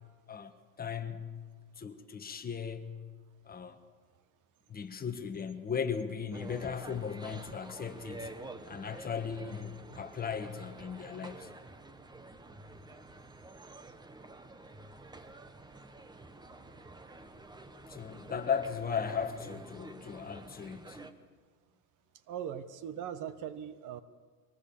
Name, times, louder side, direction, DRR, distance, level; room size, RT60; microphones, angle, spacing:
voice 1, 0.3-1.4 1.8-3.0 3.4-3.8 4.7-8.3 8.6-11.5 17.9-21.0, left 6 dB, 20° left, 1.5 m, -37 dB
sound 1, 6.3-21.1, right 2 dB, 10° right, 1.2 m, -49 dB
voice 2, 22.3-24.0, right 9 dB, 45° right, 1.3 m, -40 dB
23.5 x 18.5 x 7.2 m
supercardioid pair, 120°, 42 cm